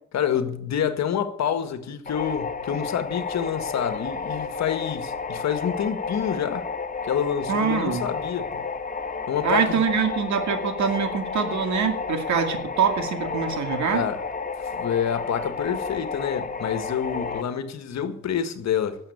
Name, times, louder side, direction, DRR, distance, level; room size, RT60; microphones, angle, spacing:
voice 1, 0.1-6.7 7.0-8.6 9.3-9.8 13.9-14.2 14.6-19.0, left 8 dB, 65° left, 1.6 m, -27 dB
sound 1, 2.1-17.4, left 5 dB, 25° left, 1.3 m, -31 dB
voice 2, 7.5-8.1 9.4-14.0, right 6 dB, 65° right, 2.4 m, -24 dB
12.0 x 7.8 x 8.5 m
cardioid pair, 90°, 30 cm